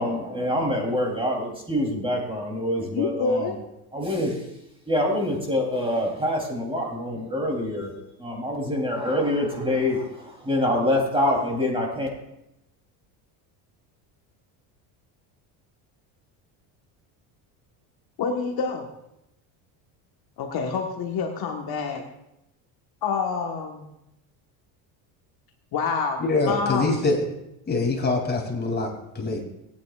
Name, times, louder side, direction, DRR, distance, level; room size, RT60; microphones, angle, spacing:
voice 1, 0.0-3.5 3.9-4.3 4.9-7.9 8.2-12.1, left 1 dB, 10° right, 0 dB, 3.3 m, -25 dB
voice 2, 2.8-3.6 18.2-18.9 20.4-22.0 23.0-23.8 25.7-26.2 26.5-27.0, left 5 dB, 50° left, 2 dB, 1.5 m, -27 dB
voice 3, 26.2-27.2 27.7-29.4, left 3 dB, 20° left, 0 dB, 3.0 m, -24 dB
19.0 x 9.5 x 2.5 m, 0.84 s
cardioid pair, 115°, 47 cm